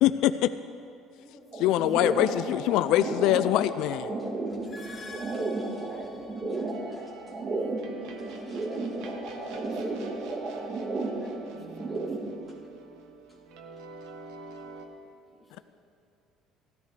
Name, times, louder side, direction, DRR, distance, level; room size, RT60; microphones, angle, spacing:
voice 1, 0.0-0.5 1.6-4.1, left 13 dB, 70° left, 12 dB, 0.3 m, -23 dB
voice 2, 1.2-1.9 5.7-8.3 9.4-10.1 10.5-12.3 15.3-15.6, left 2 dB, 5° left, -4 dB, 2.0 m, -53 dB
sound 1, 1.5-12.3, right 2 dB, 30° right, 1.5 m, -33 dB
voice 3, 4.2-4.8 5.1-5.9 6.5-6.6 6.9-7.3 8.2-9.0 9.4-9.9, left 2 dB, 10° right, -7 dB, 3.4 m, -62 dB
sound 2, 4.5-6.8, left 3 dB, 25° left, 1.2 m, -47 dB
sound 3, 6.7-14.9, right 3 dB, 80° right, 1.3 m, -45 dB
16.0 x 13.0 x 3.2 m, 2.5 s
cardioid pair, 135°, 0 cm